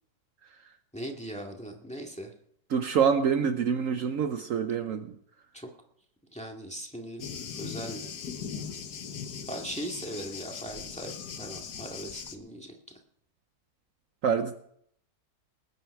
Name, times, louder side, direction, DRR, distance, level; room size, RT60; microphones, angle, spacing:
voice 1, 0.9-2.3 5.5-5.7 6.3-7.3 7.6-8.1 9.5-12.8, right 1 dB, 5° left, 1 dB, 1.9 m, -39 dB
voice 2, 2.7-5.1 14.2-14.6, right 7 dB, 65° right, 8 dB, 1.1 m, -26 dB
Thunder, 7.2-12.4, left 7 dB, 80° left, 1.6 m, -39 dB
20.5 x 9.5 x 4.7 m, 0.68 s
omnidirectional pair, 1.7 m